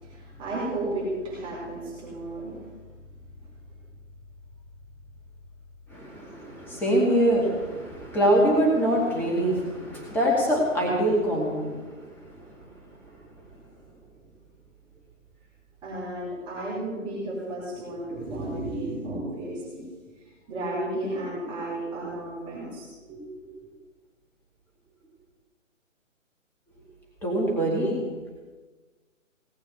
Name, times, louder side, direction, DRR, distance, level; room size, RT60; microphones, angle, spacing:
voice 1, 0.0-2.7 3.3-3.4 15.8-19.8 20.5-23.5, right 1 dB, 10° right, -7 dB, 4.7 m, -33 dB
voice 2, 5.9-11.7 27.2-28.0, right 1 dB, 5° left, -3 dB, 2.1 m, -24 dB
19.0 x 8.4 x 8.3 m, 1.3 s
figure-of-eight pair, 145°, 39 cm